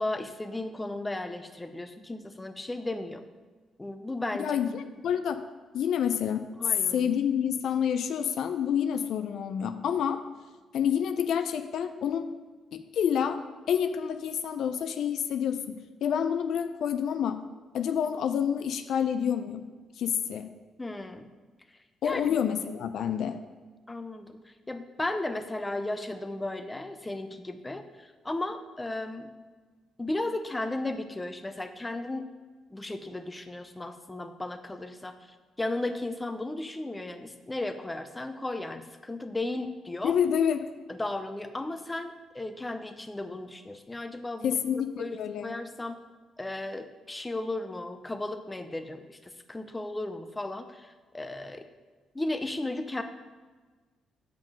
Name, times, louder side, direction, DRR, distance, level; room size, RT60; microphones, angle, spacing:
voice 1, 0.0-3.2 3.8-4.5 6.5-7.1 20.8-21.3 22.0-22.4 23.9-29.3 30.0-32.3 32.7-40.2 40.9-46.0 46.4-51.6 52.1-53.0, left 2 dB, 15° left, 8 dB, 0.6 m, -35 dB
voice 2, 4.4-5.4 5.7-6.4 6.9-10.2 10.7-12.3 12.7-13.4 13.7-17.4 17.7-19.7 20.0-20.5 22.0-23.4 40.0-40.6 44.4-45.5, left 8 dB, 70° left, 9 dB, 0.4 m, -28 dB
7.5 x 5.3 x 5.1 m, 1.4 s
cardioid pair, 90°, 0 cm